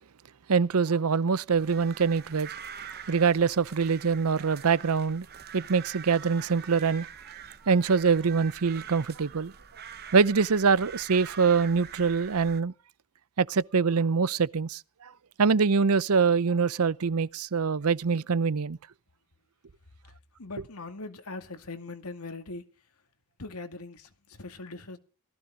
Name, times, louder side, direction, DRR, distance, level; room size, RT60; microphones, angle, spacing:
voice 1, 0.5-2.5 3.1-5.3 5.5-7.1 7.7-9.5 10.1-12.7 13.4-14.8 15.4-18.8, right 5 dB, 75° right, 0.6 m, -24 dB
sound 1, 1.5-12.6, right 8 dB, 45° right, 1.2 m, -45 dB
voice 2, 20.4-23.0 23.4-25.0, left 3 dB, 75° left, 2.3 m, -41 dB
18.0 x 15.0 x 3.8 m
head